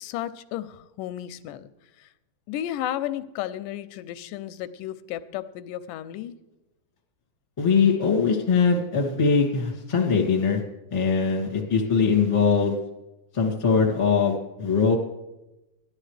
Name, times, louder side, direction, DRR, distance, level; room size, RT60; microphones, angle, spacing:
voice 1, 0.0-1.7 2.0-2.1 2.5-6.4, left 12 dB, 85° left, 13 dB, 2.2 m, -33 dB
voice 2, 7.6-10.6 10.9-12.7 13.3-15.0, left 5 dB, 15° left, 0 dB, 1.3 m, -21 dB
17.5 x 11.5 x 3.3 m, 0.98 s
omnidirectional pair, 3.7 m